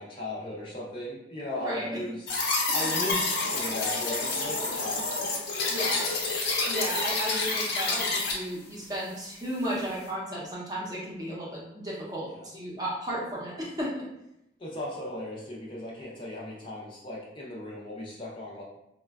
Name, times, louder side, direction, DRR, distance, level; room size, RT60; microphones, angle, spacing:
voice 1, 0.0-2.3 2.7-5.1 6.0-6.1 12.3-12.4 14.6-18.6, left 1 dB, 25° left, -4 dB, 0.4 m, -37 dB
voice 2, 1.6-1.9 2.8-2.9 5.7-6.0 6.7-14.0, right 1 dB, 20° right, -5 dB, 0.6 m, -34 dB
sound 1, 2.3-8.3, left 3 dB, 65° left, 0.6 m, -28 dB
4.1 x 2.1 x 2.3 m, 0.83 s
head